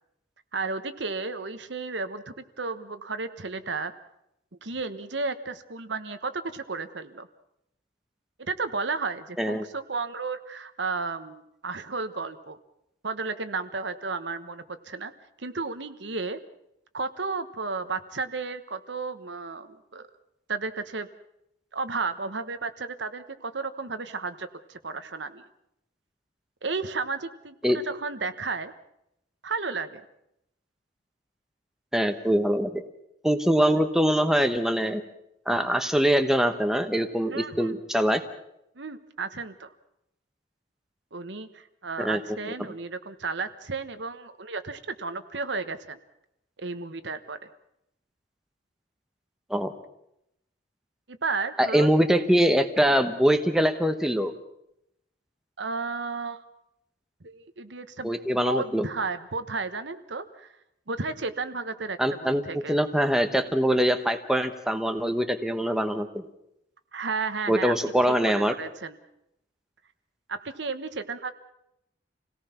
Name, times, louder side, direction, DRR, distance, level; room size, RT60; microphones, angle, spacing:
voice 1, 0.5-3.9 4.6-7.3 8.4-12.6 13.0-15.1 15.4-16.4 16.9-20.1 20.5-21.1 21.7-25.5 26.6-28.7 29.4-30.0 37.3-37.7 38.8-39.7 41.1-46.0 46.6-47.4 51.1-51.9 55.6-56.4 57.2-60.5 60.9-62.8 66.9-67.9 68.2-69.0 70.3-71.3, right 4 dB, 65° right, 10 dB, 1.2 m, -33 dB
voice 2, 31.9-32.8 33.2-35.0 35.5-38.2 42.0-42.2 49.5-49.7 51.6-54.3 58.0-58.8 62.0-62.4 62.7-66.2 67.5-68.5, equal, 5° right, 7 dB, 1.1 m, -23 dB
27.0 x 18.0 x 5.9 m, 0.80 s
head